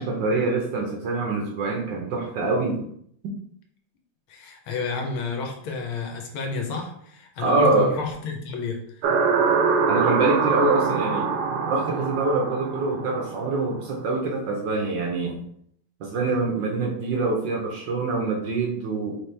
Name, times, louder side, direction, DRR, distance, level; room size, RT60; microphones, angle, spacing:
voice 1, 0.0-2.8 3.2-3.3 7.4-7.9 9.9-11.3 11.7-15.4 16.0-19.2, right 3 dB, 65° right, 0 dB, 1.3 m, -25 dB
voice 2, 4.3-8.8, left 4 dB, 75° left, 2 dB, 1.6 m, -30 dB
sound 1, 9.0-13.7, right 5 dB, 85° right, 1.6 m, -24 dB
4.4 x 3.2 x 3.3 m, 0.67 s
omnidirectional pair, 2.4 m